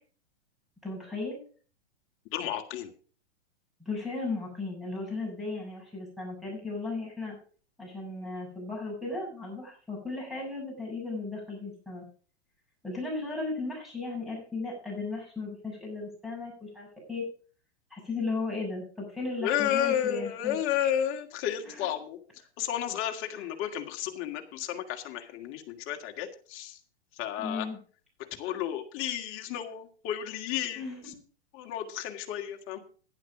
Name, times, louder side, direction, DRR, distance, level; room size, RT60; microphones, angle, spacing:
voice 1, 0.8-1.4 3.8-7.4 7.8-12.0 12.8-17.3 17.9-20.6 21.6-21.9 27.4-27.8 30.7-31.1, left 3 dB, ahead, -2 dB, 7.8 m, -36 dB
voice 2, 2.3-2.9 19.4-22.2 22.6-26.8 27.2-27.7 28.4-30.9 31.5-32.8, left 10 dB, 40° left, 4 dB, 2.2 m, -32 dB
11.0 x 11.0 x 5.1 m, 0.41 s
hypercardioid pair, 115°, 34 cm